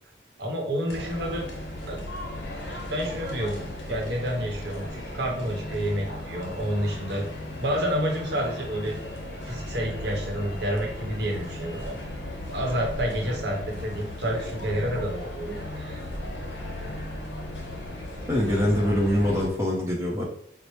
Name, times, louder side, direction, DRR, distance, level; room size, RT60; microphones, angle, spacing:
voice 1, 0.4-1.5 1.9-2.0 2.7-7.3 7.6-9.0 9.4-12.0 12.5-16.0, equal, 65° right, 0 dB, 0.8 m, -29 dB
sound 1, 0.9-19.5, left 1 dB, 80° left, 0.8 m, -36 dB
voice 2, 18.3-20.2, left 1 dB, 15° right, -4 dB, 0.6 m, -24 dB
4.3 x 2.0 x 3.1 m, 0.69 s
head